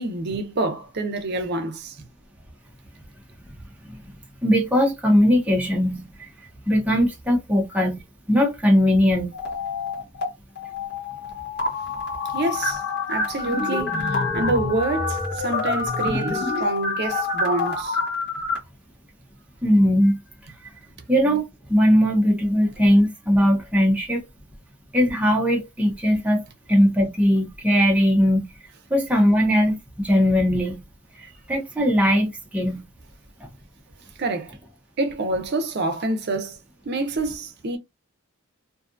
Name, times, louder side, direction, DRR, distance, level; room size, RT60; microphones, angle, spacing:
voice 1, 0.0-2.0 12.3-12.8 13.1-18.0 34.2-34.5 35.0-36.6 36.9-37.8, right 2 dB, 50° right, 0.6 m, -27 dB
voice 2, 4.4-6.0 6.7-8.0 8.3-9.3 19.6-20.2 21.1-24.2 24.9-26.4 26.7-28.4 28.9-30.8 31.2-32.8, equal, 5° right, 0.5 m, -19 dB
sound 1, 9.3-10.3 10.6-18.6, left 3 dB, 50° left, 1.0 m, -27 dB
2.6 x 2.4 x 2.4 m
head